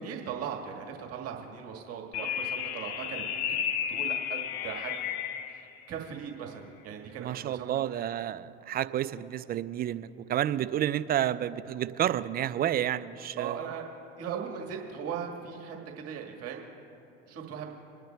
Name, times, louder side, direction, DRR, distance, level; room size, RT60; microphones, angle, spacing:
voice 1, 0.0-3.6 3.9-5.1 5.4-7.8 13.4-13.8 14.2-16.7 17.3-17.7, right 7 dB, 50° right, 1 dB, 1.7 m, -39 dB
sound 1, 2.1-5.6, left 9 dB, 55° left, 0.8 m, -32 dB
voice 2, 7.2-13.6, right 11 dB, 30° right, 15 dB, 0.4 m, -30 dB
28.0 x 10.5 x 2.3 m, 2.8 s
hypercardioid pair, 80°, 31 cm